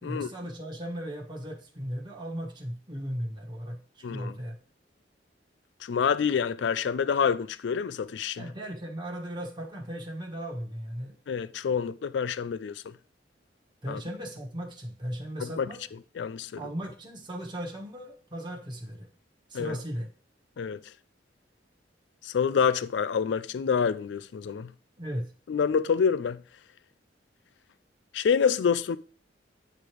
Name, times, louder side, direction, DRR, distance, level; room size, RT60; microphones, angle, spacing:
voice 1, 0.0-4.6 8.4-11.2 13.8-15.8 16.6-19.1 19.5-20.1 25.0-25.3, equal, 25° right, 1.4 m, -37 dB
voice 2, 5.8-8.5 11.3-12.8 13.9-14.0 15.4-15.7 16.2-16.6 19.5-19.8 20.6-20.8 22.2-24.7 25.5-26.4 28.1-29.0, left 6 dB, 70° left, 0.4 m, -27 dB
9.9 x 3.3 x 4.5 m
head